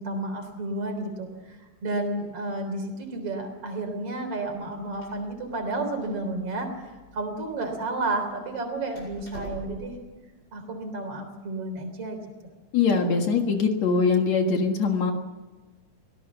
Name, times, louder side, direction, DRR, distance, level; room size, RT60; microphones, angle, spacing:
voice 1, 0.0-6.7 7.1-9.9 10.5-12.2, right 2 dB, 45° right, 5 dB, 4.5 m, -31 dB
Door, 4.5-10.1, equal, 30° left, 8.6 m, -46 dB
voice 2, 12.7-15.1, left 5 dB, 60° left, 4 dB, 2.8 m, -22 dB
24.0 x 17.5 x 7.1 m, 1.3 s
omnidirectional pair, 3.8 m